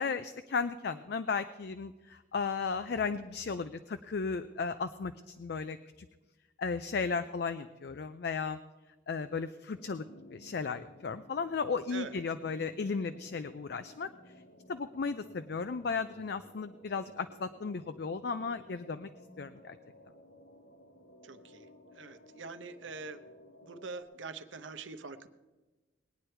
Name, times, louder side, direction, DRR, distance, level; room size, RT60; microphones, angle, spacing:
voice 1, 0.0-6.1 6.6-8.6 9.1-10.0 10.3-14.1 14.7-19.1 19.4-19.8, left 5 dB, 55° left, 11 dB, 0.4 m, -35 dB
sound 1, 9.8-24.0, left 1 dB, 85° left, 1.7 m, -56 dB
voice 2, 21.2-21.7 21.9-23.2 23.6-25.3, right 4 dB, 80° right, 10 dB, 0.8 m, -44 dB
20.0 x 9.4 x 4.5 m, 1.2 s
head